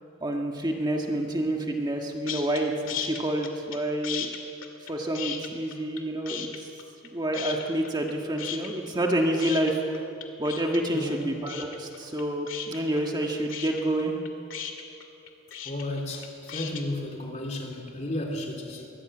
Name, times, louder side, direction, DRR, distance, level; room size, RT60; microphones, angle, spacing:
voice 1, 0.2-4.3 4.9-6.7 7.0-10.1 10.4-14.2, right 1 dB, 20° right, 1 dB, 1.6 m, -28 dB
sound 1, 2.3-2.6 2.9-3.8 4.0-6.0 6.3-7.1 7.3-8.1 8.4-16.8, left 9 dB, 65° left, 2.3 m, -36 dB
voice 2, 10.9-11.4 15.6-18.9, left 1 dB, 35° left, 2 dB, 3.1 m, -33 dB
23.0 x 18.0 x 8.9 m, 2.7 s
head